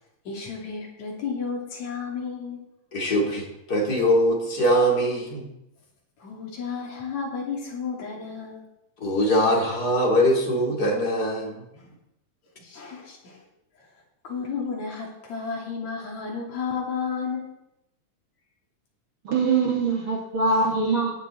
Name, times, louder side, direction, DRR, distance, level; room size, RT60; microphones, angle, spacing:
voice 1, 0.3-2.6 6.2-8.6 11.7-11.9 12.6-13.4 14.2-17.5, left 5 dB, 55° left, -2 dB, 4.2 m, -32 dB
voice 2, 2.9-5.5 9.0-11.5, equal, 30° left, -1 dB, 2.9 m, -22 dB
voice 3, 19.2-21.1, right 4 dB, 40° right, -2 dB, 2.7 m, -23 dB
17.5 x 9.3 x 4.4 m, 0.85 s
omnidirectional pair, 3.8 m